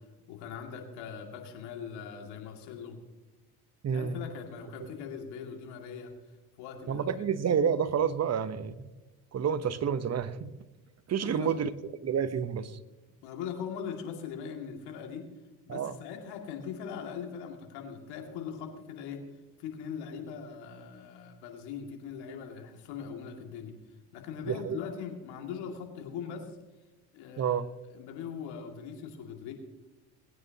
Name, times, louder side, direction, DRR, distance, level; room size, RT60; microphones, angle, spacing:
voice 1, 0.3-3.0 3.9-6.1 6.6-7.1 11.2-11.6 13.2-15.2 15.7-19.2 19.6-23.7 24.1-26.6 27.1-29.5, left 7 dB, 75° left, 2 dB, 2.5 m, -41 dB
voice 2, 3.8-4.2 4.8-4.9 6.9-8.9 9.3-10.5 11.1-11.7 12.0-12.8 15.7-16.0 24.5-24.8 27.4-27.7, right 7 dB, 40° right, 13 dB, 1.0 m, -29 dB
20.0 x 9.4 x 2.9 m, 1.1 s
supercardioid pair, 70°, 40 cm